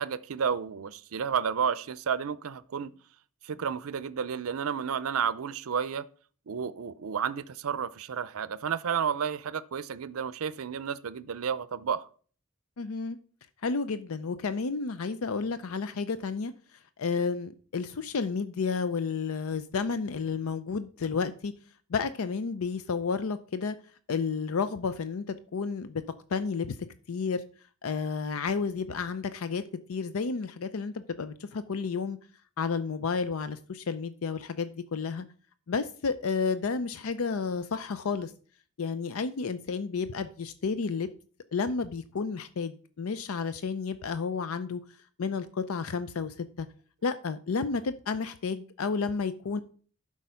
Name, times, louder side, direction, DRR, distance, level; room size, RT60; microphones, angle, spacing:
voice 1, 0.0-2.9 3.4-6.0 6.5-12.1, right 7 dB, 75° right, 0.5 m, -31 dB
voice 2, 12.8-13.2 13.6-16.5 17.0-21.5 21.9-23.8 24.1-26.0 26.3-26.8 27.1-27.4 27.8-29.6 29.9-32.2 32.6-35.2 35.7-38.3 38.8-41.1 41.5-44.8 45.2-46.7 47.0-49.6, left 5 dB, 75° left, 0.5 m, -31 dB
11.5 x 4.8 x 5.6 m
head